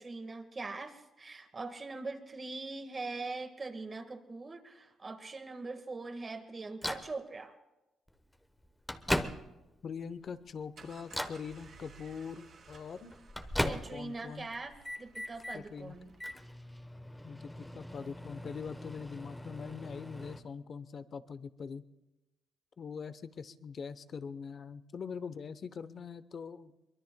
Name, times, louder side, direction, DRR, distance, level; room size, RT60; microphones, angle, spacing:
voice 1, 0.0-7.5 13.7-16.2, right 3 dB, 30° right, 7 dB, 1.6 m, -42 dB
Microwave oven, 6.8-7.1 8.1-8.2 8.6-9.8 10.3-10.6 11.1-11.5 12.7-14.2 14.5-15.6 16.1-20.4, left 1 dB, 5° left, 1.0 m, -38 dB
voice 2, 9.8-13.1 13.6-14.5 15.5-15.9 17.2-21.8 22.8-26.7, left 6 dB, 50° left, 13 dB, 0.8 m, -43 dB
sound 1, 10.4-16.8, right 5 dB, 60° right, 3.5 m, -58 dB
23.5 x 21.5 x 2.2 m, 0.98 s
cardioid pair, 90°, 0 cm